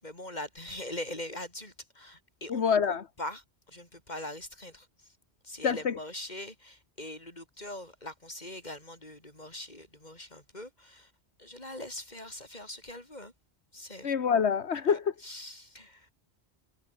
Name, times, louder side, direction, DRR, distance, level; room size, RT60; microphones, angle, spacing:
voice 1, 0.0-3.4 3.7-5.1 5.4-11.1 11.4-13.3 13.7-14.1 14.9-16.1, left 1 dB, 40° left, 6.1 m, -42 dB
voice 2, 2.5-3.1 5.6-6.0 14.0-15.0, left 7 dB, 80° left, 1.5 m, -26 dB
omnidirectional pair, 1.1 m